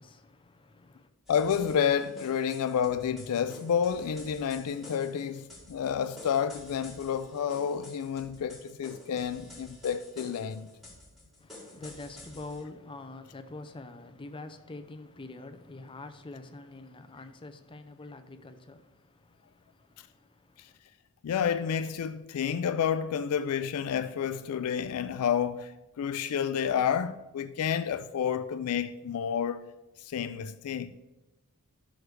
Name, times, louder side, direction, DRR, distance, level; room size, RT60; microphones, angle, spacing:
voice 1, 0.0-1.1 11.4-20.8, left 2 dB, 25° left, 0.6 m, -46 dB
voice 2, 1.3-10.7 20.6-20.7 21.2-29.6 30.0-30.9, left 8 dB, 75° left, 0.3 m, -30 dB
sound 1, 1.3-12.6, left 1 dB, ahead, 2.4 m, -50 dB
11.5 x 6.4 x 3.3 m
head